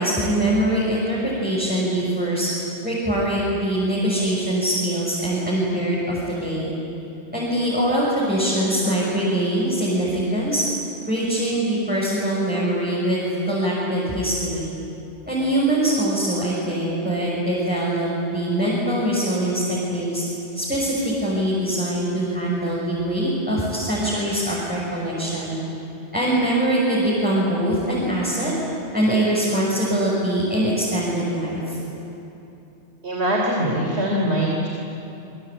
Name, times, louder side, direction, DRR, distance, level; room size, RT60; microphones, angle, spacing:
voice 1, 0.0-2.5 2.8-6.7 7.3-10.6 11.1-14.7 15.3-20.2 20.5-25.5 26.1-28.5 28.9-31.8, right 1 dB, 10° right, -7 dB, 6.6 m, -23 dB
voice 2, 33.0-34.7, equal, 70° right, -2 dB, 3.7 m, -22 dB
28.5 x 23.5 x 8.8 m, 2.9 s
omnidirectional pair, 1.2 m